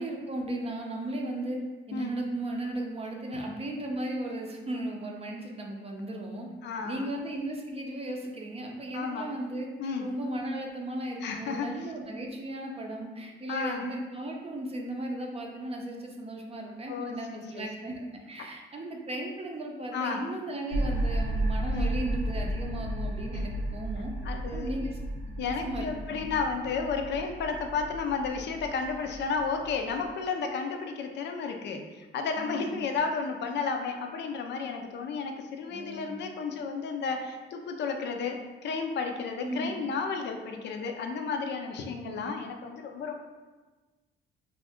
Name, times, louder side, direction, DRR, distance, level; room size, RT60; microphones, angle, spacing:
voice 1, 0.0-1.6 1.9-6.5 6.8-24.1 24.5-25.0 25.4-25.8 26.1-26.3 32.4-32.8 35.7-36.2 39.4-39.8 41.9-42.3, right 1 dB, 30° right, 1 dB, 0.5 m, -36 dB
voice 2, 6.6-7.1 8.9-9.3 9.8-10.1 11.2-11.7 13.5-13.8 16.9-17.7 19.9-20.2 21.7-21.9 24.2-24.7 25.4-43.1, left 5 dB, 60° left, 4 dB, 0.4 m, -32 dB
sound 1, 20.7-30.1, right 1 dB, 85° right, 0.7 m, -33 dB
2.5 x 2.4 x 3.5 m, 1.3 s
cardioid pair, 90°, 20 cm